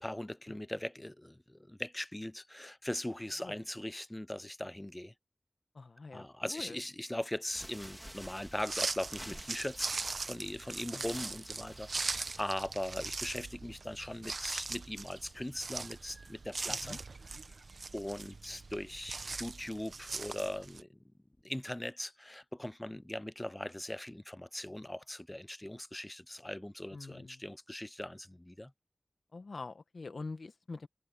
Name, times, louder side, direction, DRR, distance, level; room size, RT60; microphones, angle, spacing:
voice 1, 0.0-5.1 6.1-17.0 17.9-20.9 21.4-28.7, left 1 dB, 15° left, 0.3 m, -40 dB
voice 2, 5.7-6.8 10.9-11.2 16.7-17.0 26.9-27.4 29.3-30.9, left 3 dB, 75° left, 1.3 m, -45 dB
sound 1, 7.4-13.1, equal, 5° right, 2.5 m, -51 dB
sound 2, 8.6-20.8, right 3 dB, 70° right, 0.7 m, -40 dB
wide cardioid pair, 70°, 0 cm